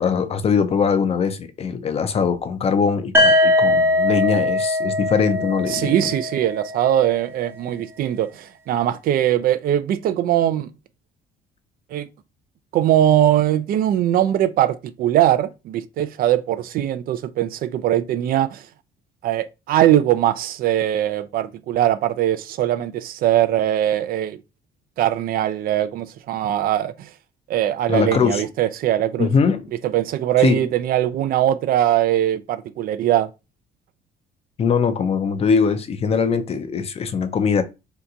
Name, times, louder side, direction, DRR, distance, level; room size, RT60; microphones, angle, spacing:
voice 1, 0.0-6.2 27.9-28.5 29.2-29.7 30.4-30.7 34.6-37.6, left 6 dB, 35° left, 0.5 m, -21 dB
sound 1, 3.1-7.0, left 1 dB, 15° right, 0.6 m, -20 dB
voice 2, 5.7-10.7 11.9-12.1 12.7-18.6 19.2-24.4 25.0-27.1 27.5-29.3 29.8-33.3, right 12 dB, 60° right, 0.4 m, -21 dB
2.8 x 2.3 x 3.8 m
cardioid pair, 110°, 17 cm